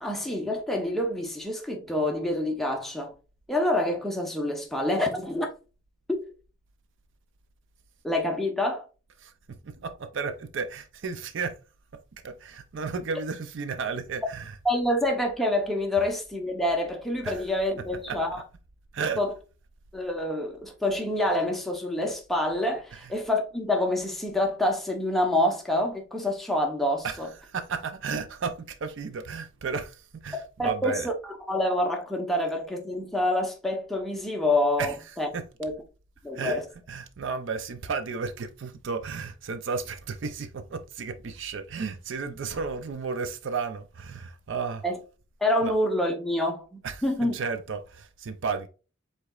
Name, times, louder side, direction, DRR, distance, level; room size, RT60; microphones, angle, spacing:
voice 1, 0.0-3.1 3.5-5.5 6.1-6.2 8.0-8.8 14.6-18.4 19.2-19.3 19.9-27.3 30.3-35.3 35.6-35.7 36.2-36.6 44.8-45.0 45.4-47.3, left 1 dB, ahead, 0.8 m, -27 dB
voice 2, 9.2-11.6 12.2-14.6 16.0-16.1 17.2-18.4 18.9-19.2 22.9-23.2 27.0-31.1 34.8-35.5 36.3-44.9 45.6-45.7 46.8-48.7, right 5 dB, 60° right, 0.4 m, -34 dB
4.8 x 4.0 x 2.3 m
head